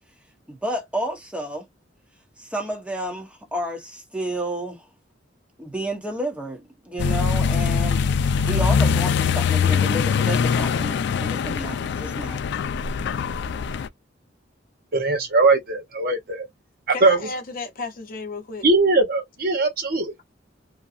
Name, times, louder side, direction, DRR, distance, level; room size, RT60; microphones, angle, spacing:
voice 1, 0.5-1.7 2.4-4.9 5.6-8.0 8.5-12.4, right 1 dB, 5° right, 1.0 m, -31 dB
Accelerating revving vroom, 7.0-13.9, left 6 dB, 65° left, 0.3 m, -22 dB
voice 2, 14.9-16.5 16.9-17.3 18.6-20.1, right 3 dB, 55° right, 0.8 m, -20 dB
voice 3, 16.9-18.6, left 3 dB, 50° left, 0.7 m, -33 dB
2.8 x 2.3 x 2.4 m
head